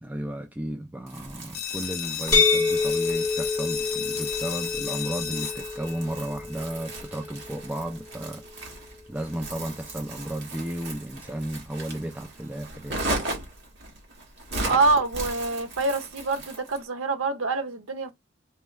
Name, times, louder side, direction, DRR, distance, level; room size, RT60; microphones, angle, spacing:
voice 1, 0.0-8.4 9.1-13.1, right 1 dB, 10° right, 0.3 m, -34 dB
Crumpling crinkling, 1.1-16.9, right 2 dB, 60° right, 1.5 m, -37 dB
sound 1, 1.5-7.0, left 9 dB, 50° left, 0.6 m, -34 dB
sound 2, 2.3-8.1, left 4 dB, 20° left, 1.2 m, -28 dB
voice 2, 14.7-18.1, right 3 dB, 90° right, 0.7 m, -25 dB
4.4 x 2.3 x 3.1 m
head